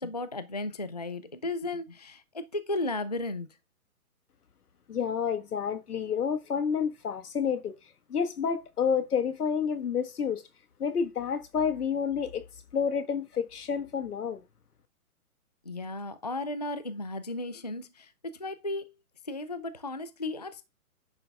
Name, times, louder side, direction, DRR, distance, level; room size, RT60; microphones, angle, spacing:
voice 1, 0.0-3.5 15.6-18.9 19.3-20.7, left 2 dB, 30° left, 0.4 m, -35 dB
voice 2, 4.9-7.7 8.1-10.4 10.8-12.5 12.7-14.4, left 7 dB, 90° left, 1.5 m, -29 dB
10.0 x 5.6 x 3.4 m
hypercardioid pair, 170°, 44 cm